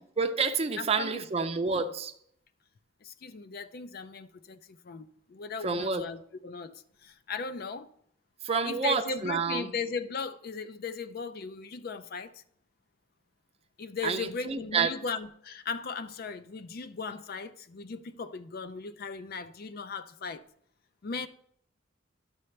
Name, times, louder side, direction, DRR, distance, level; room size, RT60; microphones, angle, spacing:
voice 1, 0.2-2.1 5.6-6.0 8.4-9.7 14.0-14.9, right 5 dB, 30° right, 0.5 m, -29 dB
voice 2, 0.8-1.2 3.0-7.9 8.6-12.4 13.8-20.4 21.0-21.3, left 5 dB, 50° left, 0.4 m, -37 dB
10.5 x 6.7 x 3.2 m
head